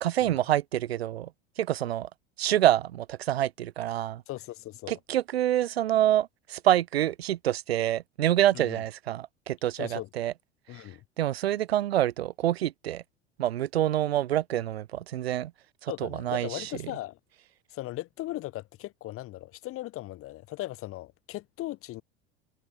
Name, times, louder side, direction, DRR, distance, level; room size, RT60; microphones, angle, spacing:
voice 1, 0.0-1.3 1.6-2.1 2.4-4.2 4.9-10.3 10.7-10.8 11.2-13.0 13.4-15.5 15.8-16.9, right 12 dB, 65° right, 2.0 m, -27 dB
voice 2, 4.3-4.9 8.5-8.8 9.8-10.1 10.7-11.0 15.9-17.2 17.7-22.0, left 16 dB, 40° left, 4.1 m, -38 dB
figure-of-eight pair, 80°, 33 cm